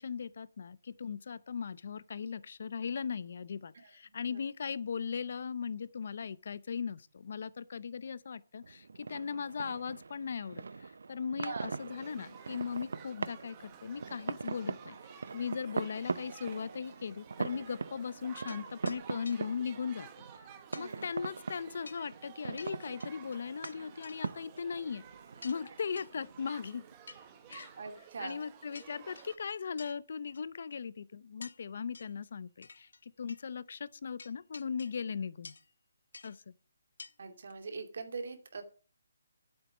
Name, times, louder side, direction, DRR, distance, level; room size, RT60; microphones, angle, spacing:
voice 1, 0.0-20.1 20.8-25.0 25.4-26.8 27.5-27.8 28.2-35.5 36.2-36.5, left 6 dB, 50° left, 0.6 m, -38 dB
voice 2, 3.8-4.4 11.4-11.7 20.7-21.1 27.8-28.4 37.2-38.6, right 4 dB, 55° right, 2.5 m, -42 dB
sound 1, 8.6-27.9, right 4 dB, 70° right, 0.6 m, -42 dB
Shout / Human group actions, 11.7-29.3, right 8 dB, 15° right, 1.0 m, -54 dB
sound 2, 18.5-18.6 18.8-19.0 19.2-19.4 20.7-20.9 21.8-22.1 22.6-23.8 24.0-24.6 24.9-25.0 25.4-25.6 26.0-26.1 27.1-27.7 28.3-28.5 28.7-29.4 29.8-30.0 30.3-30.4 31.4-31.6 31.9-32.2 32.6-33.0 33.3-33.4 34.2-35.0 35.4-35.7 36.1-36.3 37.0-37.1 37.5-37.6, left 4 dB, 75° left, 1.2 m, -51 dB
12.5 x 8.1 x 6.2 m
hypercardioid pair, 175°, 0 cm